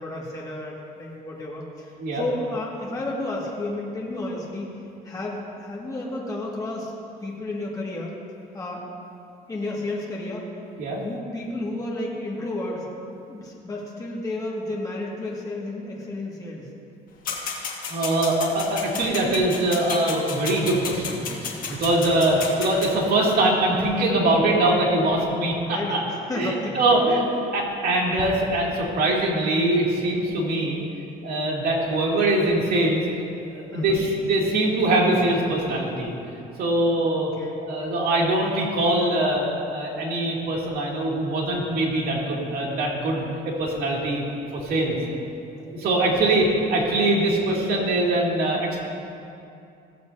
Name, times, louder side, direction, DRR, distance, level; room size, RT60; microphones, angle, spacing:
voice 1, 0.0-4.7 5.0-6.9 7.2-8.1 8.5-8.8 9.5-10.5 11.0-12.9 13.3-16.7 21.9-22.2 25.6-27.0 33.7-34.1 37.1-37.6 46.0-46.5 47.6-47.7, left 2 dB, 20° left, -4 dB, 2.0 m, -32 dB
sound 1, 17.2-22.9, left 5 dB, 55° left, 1.5 m, -32 dB
voice 2, 17.9-26.0 26.4-27.2 27.5-30.8 31.2-33.0 33.4-36.1 36.6-37.3 37.6-44.2 44.5-45.0 45.7-48.8, right 1 dB, 65° right, -4 dB, 2.5 m, -23 dB
16.0 x 7.6 x 2.8 m, 2.6 s
cardioid pair, 110°, 17 cm